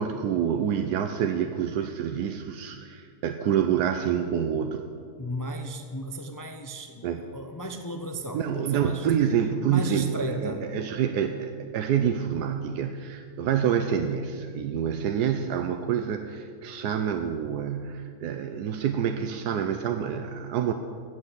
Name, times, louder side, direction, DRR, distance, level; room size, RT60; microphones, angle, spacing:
voice 1, 0.0-4.8 7.0-7.2 8.3-20.7, right 8 dB, 90° right, 6 dB, 1.3 m, -27 dB
voice 2, 5.2-9.1 9.6-10.6, equal, 30° left, 5 dB, 0.3 m, -35 dB
15.5 x 6.5 x 8.1 m, 2.2 s
omnidirectional pair, 1.7 m